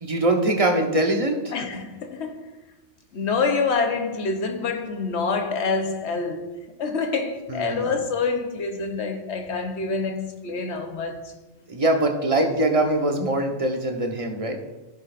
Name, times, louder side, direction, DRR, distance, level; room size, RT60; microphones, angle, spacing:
voice 1, 0.0-1.5 7.5-7.9 11.7-14.6, right 1 dB, 30° right, 1.1 m, -23 dB
voice 2, 1.5-2.5 3.1-11.3, left 4 dB, 75° left, 1.2 m, -27 dB
14.5 x 6.5 x 2.5 m
omnidirectional pair, 1.2 m